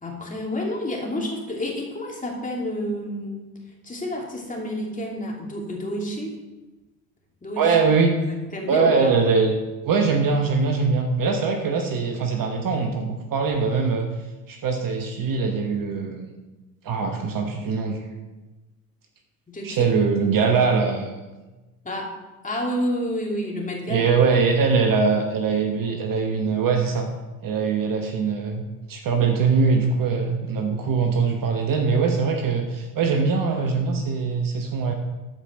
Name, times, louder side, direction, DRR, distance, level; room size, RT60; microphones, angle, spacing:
voice 1, 0.0-3.5 3.8-6.4 7.4-7.7 8.3-9.1 19.5-19.9 21.8-22.1 22.4-24.1, left 1 dB, 15° left, -1 dB, 2.7 m, -29 dB
voice 2, 7.6-8.1 8.7-9.5 9.8-14.1 14.5-16.3 16.8-18.0 19.6-21.1 23.9-27.1 27.4-28.6 28.9-34.9, right 5 dB, 40° right, 4 dB, 1.2 m, -22 dB
13.0 x 5.1 x 4.3 m, 1.1 s
hypercardioid pair, 65°, 49 cm